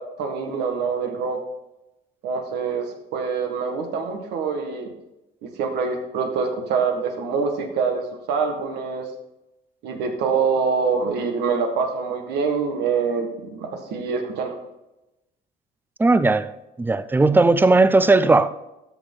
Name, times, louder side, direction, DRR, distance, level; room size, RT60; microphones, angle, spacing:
voice 1, 0.2-1.4 2.2-4.9 5.4-9.1 9.8-14.6, right 5 dB, 80° right, 1.7 m, -25 dB
voice 2, 16.0-16.5 16.8-18.5, right 3 dB, 10° right, 0.5 m, -17 dB
13.0 x 6.1 x 3.9 m
cardioid pair, 110°, 17 cm